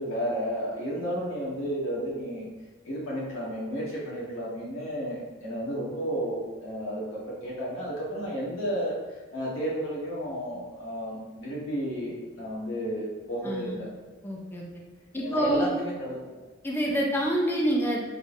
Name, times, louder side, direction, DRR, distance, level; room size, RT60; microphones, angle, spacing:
voice 1, 0.0-2.5 2.8-13.9 15.2-16.2, equal, 70° left, -6 dB, 1.3 m, -32 dB
voice 2, 13.4-13.8 14.2-14.8 15.1-15.7 16.6-18.0, equal, 10° left, -2 dB, 0.4 m, -27 dB
3.6 x 3.3 x 2.6 m, 1.2 s
head